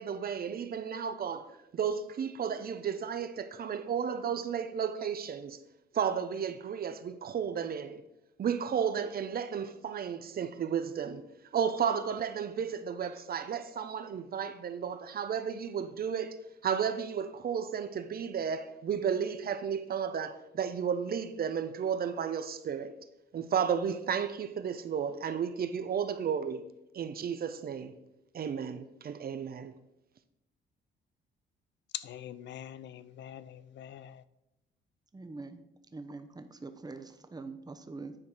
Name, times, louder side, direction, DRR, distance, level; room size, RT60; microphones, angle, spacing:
voice 1, 0.0-1.5 1.7-5.6 5.9-8.0 8.4-11.2 11.5-16.4 16.6-22.9 23.3-26.6 26.9-27.9 28.3-29.7, right 7 dB, 50° right, 0.7 m, -33 dB
voice 2, 31.9-34.2, left 11 dB, 65° left, 0.5 m, -43 dB
voice 3, 35.1-35.6 35.9-38.2, right 3 dB, 20° right, 0.8 m, -44 dB
9.7 x 4.4 x 4.9 m
cardioid pair, 90°, 20 cm